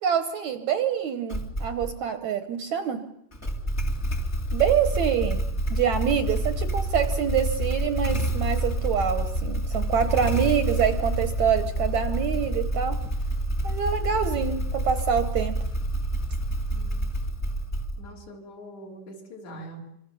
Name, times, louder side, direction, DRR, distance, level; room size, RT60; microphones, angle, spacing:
voice 1, 0.0-3.0 4.5-5.4 5.7-13.0 13.6-15.6, right 8 dB, 65° right, 9 dB, 2.0 m, -26 dB
Motorcycle / Engine starting, 1.3-2.0 3.3-18.2, right 1 dB, 20° left, 2.0 m, -28 dB
voice 2, 16.7-17.1 17.5-17.7 18.0-19.8, right 1 dB, 50° left, 0 dB, 4.8 m, -43 dB
26.5 x 25.0 x 7.0 m, 0.77 s
omnidirectional pair, 4.1 m